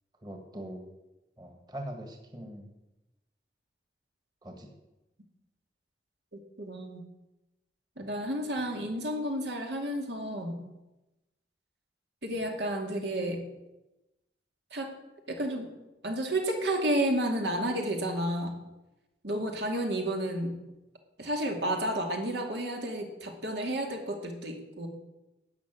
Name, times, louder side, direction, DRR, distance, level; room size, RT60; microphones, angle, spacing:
voice 1, 0.2-0.8 1.4-2.7 4.4-4.7, right 1 dB, 25° right, 4 dB, 1.6 m, -42 dB
voice 2, 6.3-7.0 8.0-10.6 12.2-13.4 14.7-14.9 15.3-15.7 16.0-18.5 19.2-20.6 21.2-24.9, right 1 dB, 80° right, 2 dB, 2.3 m, -31 dB
12.0 x 8.6 x 7.5 m, 0.99 s
head